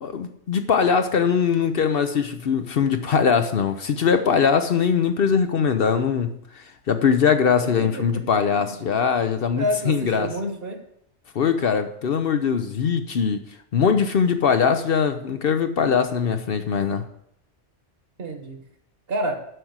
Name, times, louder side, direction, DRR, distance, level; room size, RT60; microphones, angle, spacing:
voice 1, 0.0-10.3 11.3-13.4 13.7-17.0, left 6 dB, 60° left, 8 dB, 0.8 m, -21 dB
voice 2, 7.6-8.1 9.5-10.8 18.2-18.6 19.1-19.4, equal, 55° right, 5 dB, 1.6 m, -28 dB
7.8 x 6.0 x 7.9 m, 0.72 s
omnidirectional pair, 1.2 m